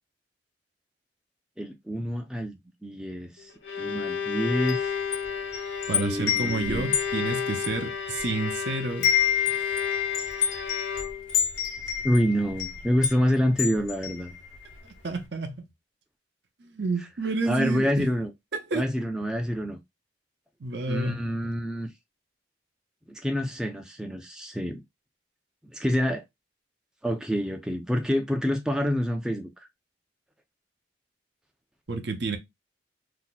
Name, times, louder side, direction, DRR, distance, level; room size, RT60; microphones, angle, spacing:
voice 1, 1.6-3.5 3.8-5.0 5.9-6.9 12.0-14.3 17.4-18.3 18.7-19.8 20.9-21.9 23.1-24.8 25.7-26.2 27.0-29.5, equal, 5° right, 0.4 m, -27 dB
Bowed string instrument, 3.4-11.4, left 6 dB, 65° left, 0.7 m, -33 dB
Wind chime, 4.5-8.6 8.9-14.8, left 8 dB, 85° left, 1.0 m, -29 dB
voice 2, 5.9-9.1 9.5-9.6 15.0-15.6 16.6-18.1 18.7-18.8 20.6-21.2 31.9-32.4, right 3 dB, 65° right, 0.7 m, -30 dB
2.7 x 2.2 x 3.9 m
head